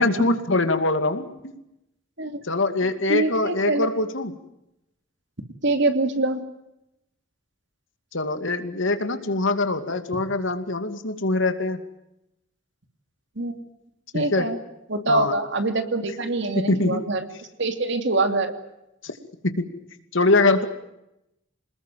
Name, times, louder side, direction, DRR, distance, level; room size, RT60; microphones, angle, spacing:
voice 1, 0.0-1.6 2.4-4.4 8.1-11.8 14.1-14.5 15.1-15.4 16.5-17.1 19.0-19.1 19.4-19.7 20.1-20.7, left 2 dB, 75° left, 8 dB, 2.5 m, -23 dB
voice 2, 3.1-3.9 5.6-6.4 13.4-13.6 14.1-14.6 14.9-17.2 17.6-18.6, right 2 dB, 65° right, 7 dB, 2.9 m, -24 dB
27.5 x 20.5 x 7.6 m, 0.85 s
head